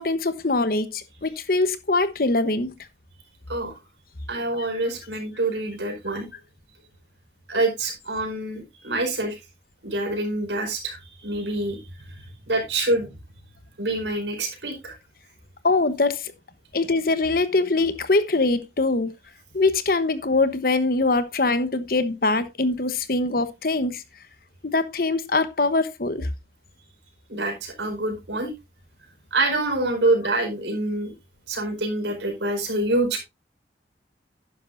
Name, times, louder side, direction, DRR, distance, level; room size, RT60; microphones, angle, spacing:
voice 1, 0.0-2.7 4.6-4.7 15.6-16.3 16.7-19.1 19.5-24.0 24.6-26.3, left 3 dB, 55° left, 1.0 m, -23 dB
voice 2, 4.3-6.3 7.5-9.4 9.8-13.1 13.8-15.0 27.3-28.6 29.3-31.1 31.5-33.2, right 2 dB, 90° right, 4.8 m, -26 dB
11.5 x 9.9 x 2.6 m
head